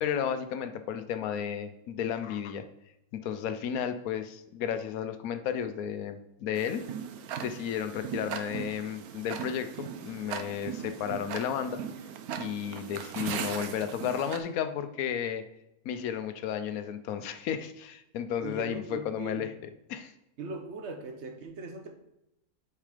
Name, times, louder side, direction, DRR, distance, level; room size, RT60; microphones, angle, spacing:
voice 1, 0.0-2.7 3.1-6.8 7.4-11.8 12.4-15.4 15.8-20.1, left 8 dB, 75° left, 10 dB, 1.1 m, -33 dB
Tick-tock, 6.6-14.4, right 8 dB, 80° right, 1.1 m, -38 dB
voice 2, 18.4-19.5 20.4-21.9, right 3 dB, 55° right, 4 dB, 1.2 m, -40 dB
6.9 x 4.5 x 5.0 m, 0.87 s
omnidirectional pair, 1.6 m